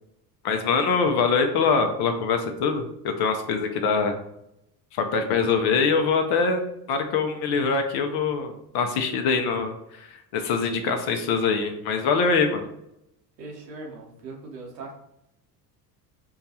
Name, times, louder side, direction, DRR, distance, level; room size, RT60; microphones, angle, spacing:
voice 1, 0.4-4.1 4.9-12.7, left 5 dB, 55° left, 5 dB, 0.7 m, -24 dB
voice 2, 13.4-15.0, right 3 dB, 90° right, -1 dB, 1.1 m, -40 dB
4.5 x 2.3 x 2.8 m, 0.80 s
hypercardioid pair, 80°, 47 cm